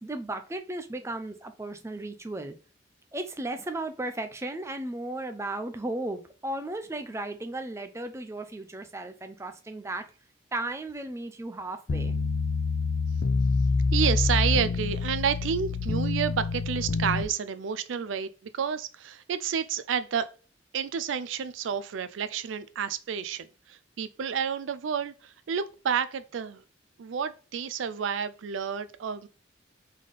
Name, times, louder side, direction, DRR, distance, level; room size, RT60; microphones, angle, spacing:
voice 1, 0.0-2.5 3.1-10.1 10.5-12.1, right 2 dB, 15° right, 0.4 m, -35 dB
sound 1, 11.9-17.2, left 4 dB, 90° left, 0.5 m, -26 dB
voice 2, 13.9-20.3 20.7-26.6 27.0-29.3, right 7 dB, 85° right, 0.4 m, -30 dB
3.8 x 3.3 x 3.8 m
head